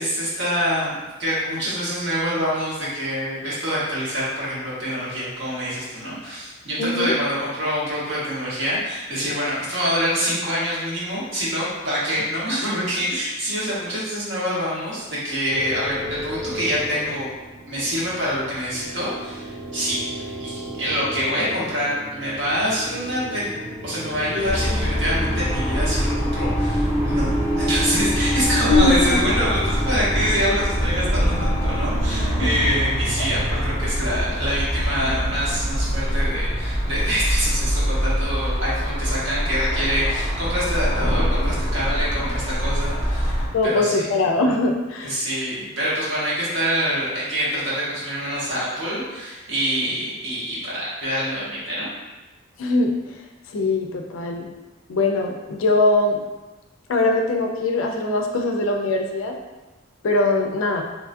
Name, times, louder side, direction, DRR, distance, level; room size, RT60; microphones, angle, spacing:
voice 1, 0.0-17.3 17.7-43.9 45.0-51.9, equal, 60° right, -8 dB, 1.1 m, -26 dB
voice 2, 6.8-7.1 28.7-29.2 33.2-33.3 43.5-45.2 52.6-53.2 53.5-54.5 54.9-56.2 56.9-59.4 60.0-60.8, left 2 dB, 70° left, 3 dB, 0.3 m, -21 dB
sound 1, 15.5-32.7, equal, 10° right, 0.7 m, -31 dB
sound 2, 24.5-43.5, equal, 30° right, 1.1 m, -24 dB
2.9 x 2.3 x 2.5 m, 1.1 s
head